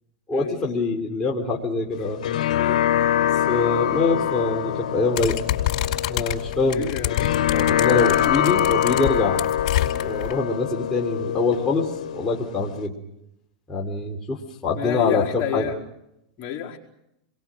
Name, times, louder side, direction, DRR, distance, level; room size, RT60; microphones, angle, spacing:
voice 1, 0.3-2.2 3.5-5.4 6.1-6.9 7.5-9.4 10.0-12.9 13.7-15.6, left 3 dB, 15° left, -3 dB, 3.7 m, -24 dB
sound 1, 1.9-12.9, left 10 dB, 80° left, 1.0 m, -24 dB
sound 2, 5.2-10.3, left 14 dB, 60° left, 4.8 m, -27 dB
voice 2, 6.7-7.3 14.8-15.8 16.4-16.8, left 10 dB, 35° left, -2 dB, 4.8 m, -29 dB
29.5 x 22.5 x 6.4 m, 0.84 s
supercardioid pair, 130°, 4 cm